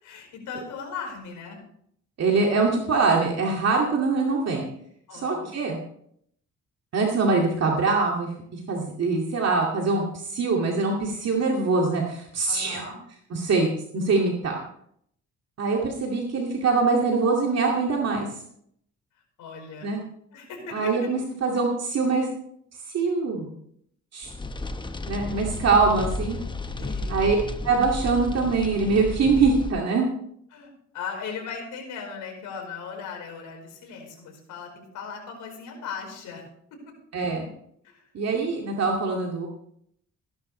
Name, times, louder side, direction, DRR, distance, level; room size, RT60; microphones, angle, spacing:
voice 1, 0.0-1.6 5.1-5.5 12.5-13.0 19.4-19.9 20.3-20.9 26.8-27.3 30.5-36.4 37.8-38.0, left 6 dB, 85° left, 1 dB, 4.7 m, -38 dB
voice 2, 2.2-4.6 5.1-5.8 6.9-12.9 13.3-13.7 13.9-14.6 15.6-18.3 19.8-20.0 20.7-22.3 22.9-23.5 24.1-24.3 25.1-26.4 27.1-27.4 27.6-30.1 37.1-37.5 38.1-39.5, right 4 dB, 55° right, -1 dB, 2.4 m, -23 dB
sound 1, 24.2-29.7, left 2 dB, 15° left, 0.9 m, -32 dB
17.0 x 11.5 x 3.3 m, 0.68 s
cardioid pair, 90°, 30 cm